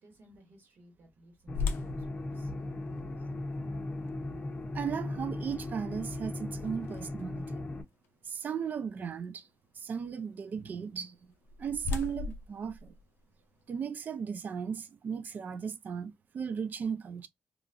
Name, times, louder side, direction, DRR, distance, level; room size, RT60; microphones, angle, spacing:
voice 1, 0.0-2.5 6.5-6.6, right 1 dB, 65° right, 1.6 m, -58 dB
sound 1, 1.5-7.5 8.0-8.1 8.7-9.0 11.0-13.7, left 4 dB, 85° left, 0.5 m, -40 dB
sound 2, 1.5-7.8, left 2 dB, 30° left, 0.6 m, -37 dB
voice 2, 4.7-7.6 8.2-9.5 9.7-11.2 11.6-12.9 13.7-17.3, right 7 dB, 50° right, 0.4 m, -36 dB
3.0 x 2.4 x 2.5 m
cardioid pair, 80°, 4 cm